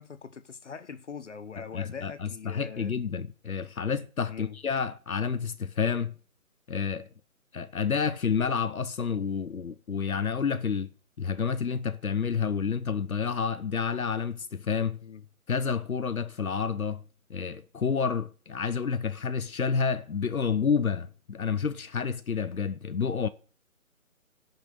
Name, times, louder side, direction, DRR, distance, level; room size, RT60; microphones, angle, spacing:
voice 1, 0.0-2.9 4.3-4.6 15.0-15.2, left 6 dB, 55° left, 1.1 m, -42 dB
voice 2, 1.7-6.1 6.7-7.1 7.5-10.9 11.2-15.0 15.5-17.0 17.3-23.3, left 6 dB, 75° left, 0.9 m, -29 dB
12.5 x 6.0 x 8.6 m
figure-of-eight pair, 150°, 42 cm